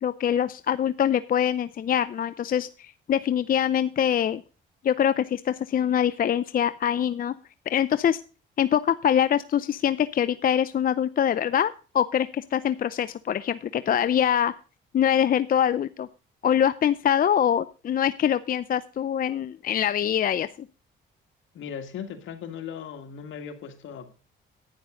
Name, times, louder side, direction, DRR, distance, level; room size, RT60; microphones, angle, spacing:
voice 1, 0.0-4.4 4.8-7.3 7.7-8.2 8.6-14.5 14.9-16.1 16.4-20.5, left 9 dB, 45° left, 14 dB, 0.5 m, -24 dB
voice 2, 21.5-24.1, left 7 dB, 75° left, 6 dB, 2.1 m, -38 dB
11.5 x 9.5 x 3.8 m, 0.35 s
cardioid pair, 90°, 20 cm